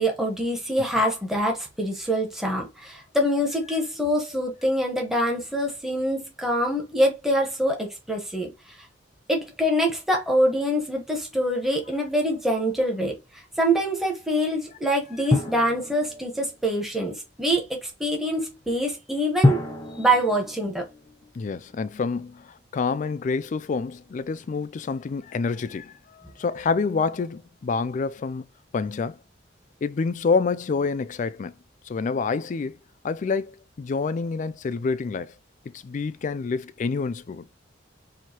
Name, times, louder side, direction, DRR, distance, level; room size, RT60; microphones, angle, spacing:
voice 1, 0.0-8.5 9.3-13.2 13.6-19.6 20.0-20.8, equal, ahead, 1.1 m, -25 dB
Drum, 15.3-16.8 19.4-21.6, left 2 dB, 15° left, 0.7 m, -26 dB
voice 2, 21.4-28.4 28.7-29.2 29.8-31.5 31.9-32.8 33.0-35.3 35.7-37.4, left 4 dB, 40° left, 0.3 m, -27 dB
4.6 x 2.8 x 2.8 m
head